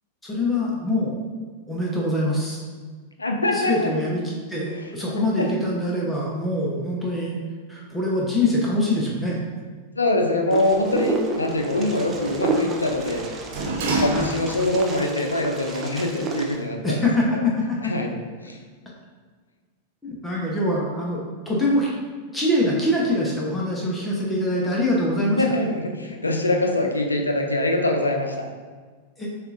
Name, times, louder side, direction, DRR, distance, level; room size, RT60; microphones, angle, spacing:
voice 1, 0.2-1.2 1.7-2.6 3.5-7.4 7.7-9.4 14.1-14.3 16.8-17.9 20.0-22.0 22.3-25.4 29.2-29.3, left 1 dB, 10° left, -4 dB, 0.8 m, -24 dB
voice 2, 3.2-3.9 4.7-4.9 5.4-5.5 10.0-13.3 14.0-17.1 17.3-17.4 17.8-18.1 18.4-18.6 25.4-28.5, left 1 dB, 85° left, 3 dB, 0.4 m, -24 dB
Wind, 10.5-16.6, right 3 dB, 25° right, 0.5 m, -30 dB
Sliding door, 10.7-14.8 15.2-15.3, right 2 dB, 55° right, 0.7 m, -30 dB
6.6 x 2.4 x 2.5 m, 1.5 s
figure-of-eight pair, 95°, 0 cm